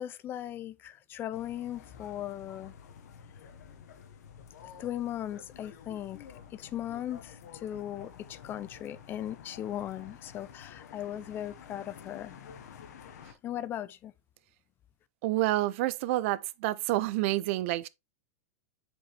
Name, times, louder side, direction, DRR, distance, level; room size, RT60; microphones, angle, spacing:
voice 1, 0.0-2.7 4.8-12.4 13.4-14.1, left 11 dB, 25° left, 0.5 m, -38 dB
sound 1, 1.3-13.3, left 7 dB, 75° left, 1.4 m, -50 dB
voice 2, 15.2-17.9, right 17 dB, 50° right, 0.6 m, -28 dB
7.1 x 5.2 x 3.3 m
supercardioid pair, 155°, 9 cm